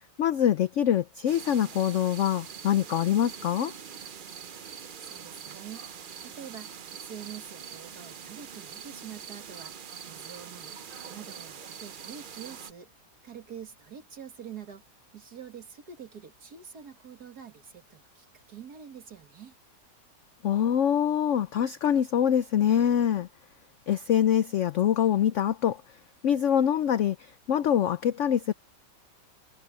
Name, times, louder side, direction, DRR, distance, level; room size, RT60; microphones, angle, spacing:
voice 1, 0.2-3.7 20.4-23.3 23.9-25.8 26.2-28.5, left 9 dB, 75° left, 0.7 m, -24 dB
sound 1, 1.3-12.7, right 7 dB, 80° right, 0.4 m, -44 dB
voice 2, 5.0-9.8 10.1-10.8 11.1-12.9 13.2-14.8 15.1-19.6, right 8 dB, 60° right, 2.5 m, -46 dB
omnidirectional pair, 1.9 m